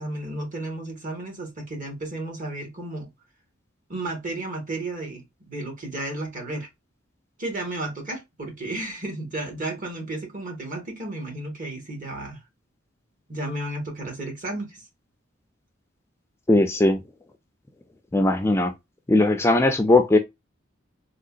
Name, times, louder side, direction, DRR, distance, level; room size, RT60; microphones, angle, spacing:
voice 1, 0.0-3.1 3.9-6.7 7.4-12.4 13.3-14.8, right 2 dB, 45° right, 1.5 m, -33 dB
voice 2, 16.5-17.0 18.1-18.7 19.1-20.2, left 2 dB, 15° left, 0.4 m, -19 dB
3.8 x 2.8 x 2.4 m
head